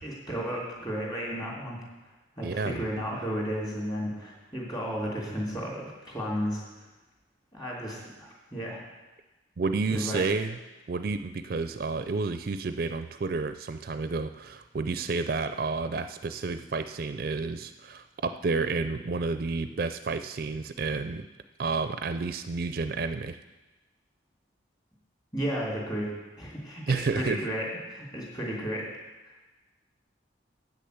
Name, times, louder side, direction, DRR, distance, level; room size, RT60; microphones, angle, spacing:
voice 1, 0.0-1.8 2.4-6.6 7.5-8.8 9.9-10.2 25.3-26.1 26.4-28.9, equal, 20° left, -3 dB, 2.8 m, -33 dB
voice 2, 2.4-2.8 9.6-10.6 10.9-21.2 21.6-23.4 26.9-27.4, right 4 dB, 50° right, 10 dB, 0.4 m, -30 dB
8.4 x 6.7 x 7.9 m, 1.1 s
head